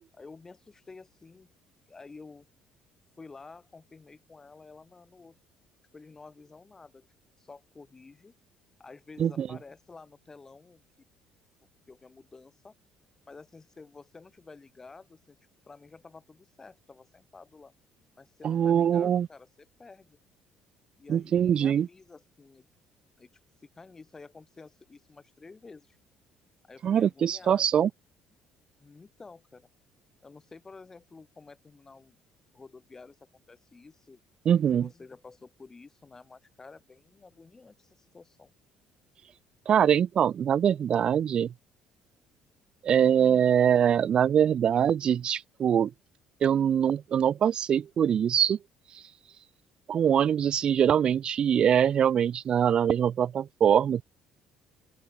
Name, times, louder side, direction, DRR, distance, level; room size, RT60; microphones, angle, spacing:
voice 1, 0.1-1.5 1.9-2.5 3.2-5.4 5.9-7.1 7.4-8.3 8.8-10.8 11.9-12.7 13.3-15.4 15.7-17.7 18.2-20.2 21.0-22.7 23.2-23.3 23.6-26.0 26.6-27.7 28.8-29.7 30.2-32.2 32.5-33.2 33.5-34.2 34.7-38.5, left 4 dB, 25° left, 2.6 m, -50 dB
voice 2, 18.4-19.3 21.1-21.9 26.8-27.9 34.5-34.9 39.7-41.5 42.8-45.9 46.4-48.6 49.9-54.0, right 8 dB, 50° right, 0.5 m, -23 dB
open air
supercardioid pair, 90°, 2 cm